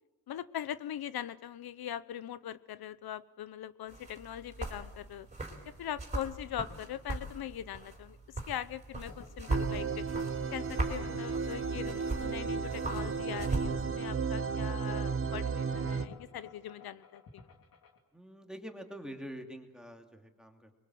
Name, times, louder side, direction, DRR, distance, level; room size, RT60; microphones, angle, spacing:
voice 1, 0.3-5.3 5.8-10.1 10.5-17.5, left 11 dB, 85° left, 15 dB, 0.9 m, -41 dB
sound 1, 3.9-13.7, right 2 dB, 20° right, 4.2 m, -39 dB
sound 2, 9.1-18.0, left 4 dB, 70° left, 3.1 m, -52 dB
sound 3, 9.5-16.1, right 5 dB, 35° right, 1.1 m, -34 dB
voice 2, 18.1-20.8, equal, ahead, 4 dB, 2.4 m, -46 dB
27.0 x 22.5 x 7.8 m, 1.1 s
wide cardioid pair, 170°, 36 cm